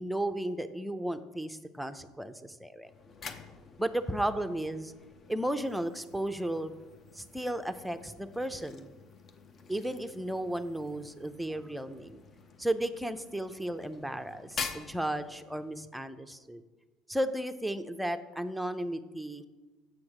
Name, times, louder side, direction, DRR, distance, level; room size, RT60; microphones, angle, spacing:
voice 1, 0.0-2.9 3.8-4.9 5.3-6.7 7.1-8.9 9.7-12.2 12.6-16.6 17.1-19.5, right 1 dB, ahead, 8 dB, 0.6 m, -34 dB
sound 1, 2.8-15.8, left 5 dB, 40° left, 0.7 m, -47 dB
7.5 x 6.2 x 6.0 m, 1.2 s
supercardioid pair, 85°, 0 cm